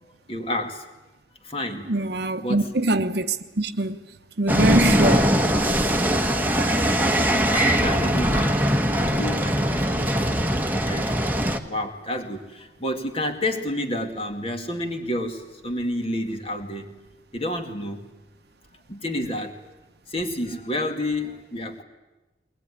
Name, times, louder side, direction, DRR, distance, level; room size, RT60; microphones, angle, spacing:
voice 1, 0.0-0.8 1.4-1.9 2.4-2.7 5.0-5.6 6.8-7.0 7.5-8.6 9.0-11.3 11.6-16.9 17.3-18.0 18.9-19.6 20.1-21.8, left 1 dB, 30° left, 2.2 m, -30 dB
voice 2, 1.9-4.0 4.4-5.3, right 2 dB, 60° right, 1.0 m, -23 dB
sound 1, 4.5-11.6, equal, 10° right, 1.3 m, -21 dB
22.0 x 20.5 x 9.9 m
head